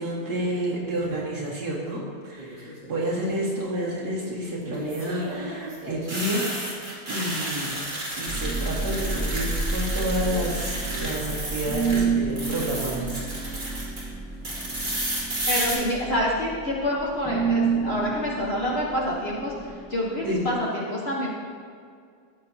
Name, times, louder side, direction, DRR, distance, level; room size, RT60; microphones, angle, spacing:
voice 1, 0.0-6.5 7.1-7.7 8.2-13.8 20.2-20.5, right 1 dB, 60° right, -5 dB, 2.3 m, -30 dB
sound 1, 2.4-2.9 4.7-12.0 12.3-14.0 14.4-15.7, right 1 dB, 30° right, 2.3 m, -32 dB
sound 2, 8.3-20.6, right 4 dB, ahead, 0.5 m, -30 dB
voice 2, 15.5-19.5 19.9-21.3, left 1 dB, 45° left, -4 dB, 1.0 m, -27 dB
13.0 x 7.2 x 2.7 m, 2.2 s
omnidirectional pair, 1.9 m